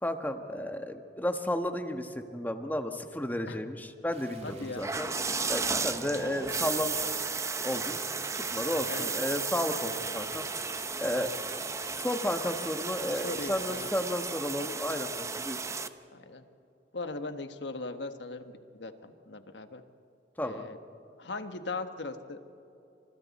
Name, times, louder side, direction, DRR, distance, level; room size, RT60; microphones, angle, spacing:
voice 1, 0.0-5.1 5.5-7.2 7.6-8.0 8.3-10.4 11.0-11.3 12.0-15.6 20.4-20.7, left 1 dB, 10° left, 6 dB, 1.3 m, -33 dB
sound 1, 4.1-14.1, right 3 dB, 40° right, 3.0 m, -52 dB
voice 2, 4.4-4.9 5.6-6.3 8.9-9.1 13.1-13.9 16.1-16.5 16.9-19.8 20.4-20.8 21.2-22.4, left 3 dB, 75° left, 8 dB, 1.4 m, -39 dB
sound 2, 4.8-15.9, right 4 dB, 15° right, 0.7 m, -34 dB
29.0 x 26.5 x 4.2 m, 2.9 s
head